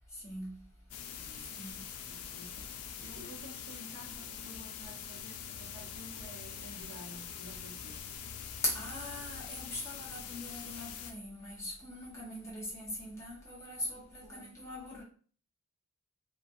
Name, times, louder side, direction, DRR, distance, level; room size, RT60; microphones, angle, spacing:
voice 1, 0.1-0.6 1.5-1.8 8.6-15.0, left 1 dB, 10° left, 1.0 m, -40 dB
sound 1, 0.9-11.1, left 8 dB, 70° left, 0.3 m, -44 dB
voice 2, 1.1-1.7 2.1-8.1 14.2-14.6, equal, 80° right, 0.9 m, -52 dB
2.4 x 2.3 x 2.6 m
head